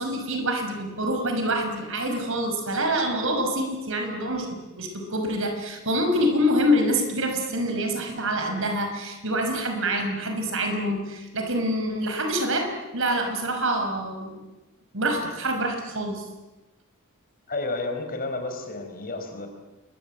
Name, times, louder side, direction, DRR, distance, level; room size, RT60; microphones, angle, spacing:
voice 1, 0.0-4.5 4.8-14.4 14.9-16.2, equal, 65° right, 4 dB, 5.9 m, -26 dB
voice 2, 17.5-19.5, left 2 dB, 45° left, 5 dB, 5.0 m, -31 dB
28.5 x 23.5 x 8.9 m, 1.1 s
head